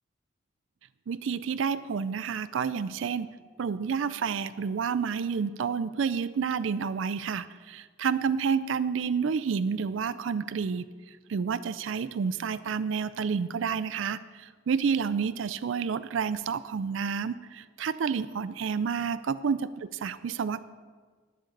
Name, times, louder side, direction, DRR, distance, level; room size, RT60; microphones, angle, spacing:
voice 1, 1.1-3.3 3.6-10.8 11.3-20.6, right 6 dB, 70° right, 15 dB, 0.4 m, -29 dB
11.0 x 7.7 x 6.6 m, 1.5 s
head